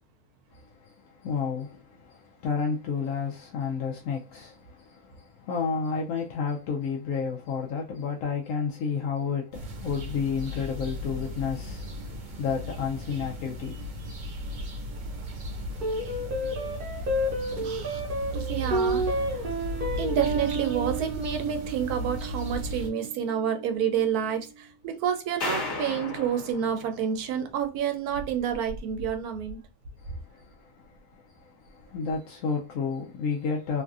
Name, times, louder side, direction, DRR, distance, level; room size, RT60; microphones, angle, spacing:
voice 1, 0.5-13.8 30.0-33.8, left 5 dB, 70° left, 0.9 m, -31 dB
sound 1, 9.5-22.9, right 1 dB, 65° right, 1.2 m, -36 dB
sound 2, 15.8-24.4, right 1 dB, 45° right, 0.8 m, -31 dB
voice 2, 17.6-18.0 18.3-19.0 19.3-19.4 20.0-29.6, right 8 dB, 85° right, 1.2 m, -29 dB
sound 3, 25.4-27.7, left 3 dB, 55° left, 1.2 m, -35 dB
3.1 x 2.5 x 2.4 m
omnidirectional pair, 1.6 m